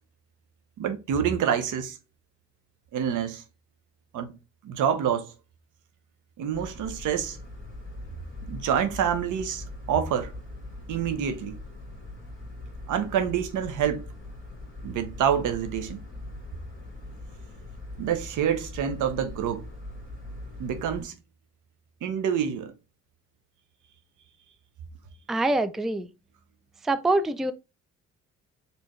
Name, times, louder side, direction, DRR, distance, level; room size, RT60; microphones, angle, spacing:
voice 1, 0.8-2.0 2.9-3.4 4.1-4.3 4.6-5.3 6.4-7.4 8.5-10.3 10.9-11.6 12.9-14.1 14.8-16.0 18.0-19.7 20.6-21.1 22.0-22.7, right 8 dB, 80° right, 0.9 m, -27 dB
sound 1, 6.5-21.1, left 2 dB, 30° right, 2.4 m, -41 dB
voice 2, 25.3-26.1 26.8-27.5, right 2 dB, ahead, 0.3 m, -25 dB
4.4 x 3.4 x 3.1 m
cardioid pair, 90°, 30 cm